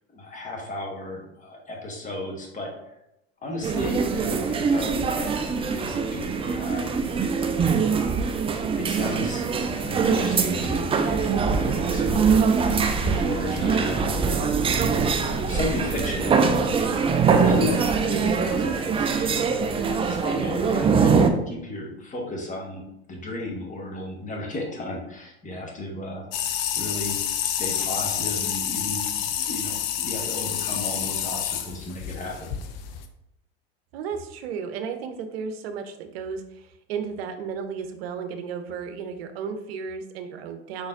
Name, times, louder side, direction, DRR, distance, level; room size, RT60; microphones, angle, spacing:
voice 1, 0.1-2.9 3.4-4.9 5.7-6.9 7.5-8.4 8.8-9.4 9.8-12.3 13.1-14.8 15.2-19.5 19.8-22.8 23.1-27.2 27.4-32.5, left 1 dB, 25° left, 0 dB, 1.4 m, -34 dB
sound 1, 3.6-21.3, right 5 dB, 20° right, 0.4 m, -23 dB
sound 2, 26.3-33.1, left 9 dB, 65° left, 0.6 m, -28 dB
voice 2, 33.9-40.9, right 6 dB, 70° right, 8 dB, 0.7 m, -34 dB
5.3 x 3.9 x 2.5 m, 0.84 s
hypercardioid pair, 85°, 32 cm